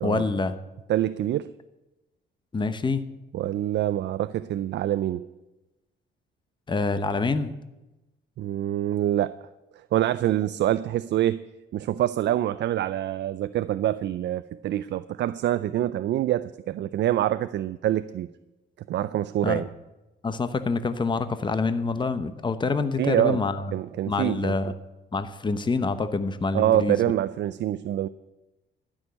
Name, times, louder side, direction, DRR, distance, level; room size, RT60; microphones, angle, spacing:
voice 1, 0.0-0.6 2.5-3.1 6.7-7.5 19.4-19.6 20.2-23.6 24.1-24.7 25.1-27.0, left 4 dB, 25° left, 0.9 m, -26 dB
voice 2, 0.9-1.5 3.3-5.3 8.4-9.4 9.9-11.4 11.7-18.3 18.9-19.7 23.0-23.4 23.7-24.5 26.5-28.1, right 12 dB, 65° right, 0.4 m, -25 dB
12.5 x 6.5 x 9.8 m
cardioid pair, 90°, 20 cm